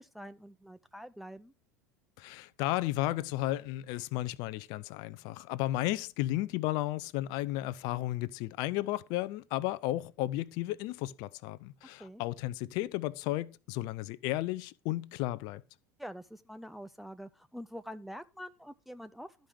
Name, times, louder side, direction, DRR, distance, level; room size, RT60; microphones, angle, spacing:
voice 1, 0.0-1.5 12.0-12.2 16.0-19.3, equal, ahead, 0.6 m, -45 dB
voice 2, 2.2-15.6, left 16 dB, 55° left, 0.7 m, -33 dB
12.5 x 5.3 x 6.2 m
figure-of-eight pair, 75°, 8 cm